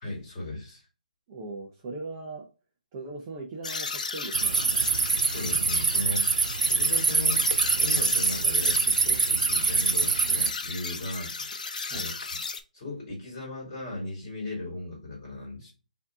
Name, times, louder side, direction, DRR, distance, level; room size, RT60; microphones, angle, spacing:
voice 1, 0.0-0.9 5.2-7.4 7.7-11.6 11.8-12.4 12.7-15.7, left 1 dB, 20° left, -2 dB, 2.3 m, -37 dB
voice 2, 1.3-2.5 2.9-4.6 11.9-12.1, right 3 dB, 20° right, 1 dB, 0.5 m, -39 dB
sound 1, 3.6-12.6, left 4 dB, 65° left, 0.7 m, -34 dB
sound 2, 4.3-10.5, right 5 dB, 90° right, 0.4 m, -25 dB
4.8 x 2.7 x 3.6 m, 0.32 s
hypercardioid pair, 170°, 4 cm